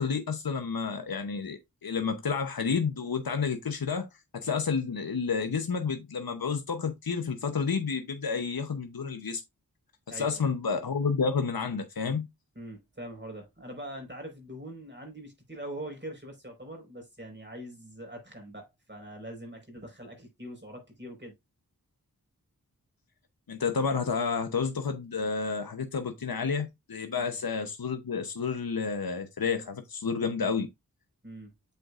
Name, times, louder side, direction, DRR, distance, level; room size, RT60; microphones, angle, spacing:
voice 1, 0.0-4.1 4.3-9.4 10.1-12.3 23.5-30.7, left 5 dB, 85° left, 0.9 m, -30 dB
voice 2, 10.1-10.5 12.5-21.3 27.1-27.4 31.2-31.5, right 1 dB, 30° right, 4.6 m, -43 dB
7.9 x 6.8 x 2.5 m
wide cardioid pair, 50°, 35 cm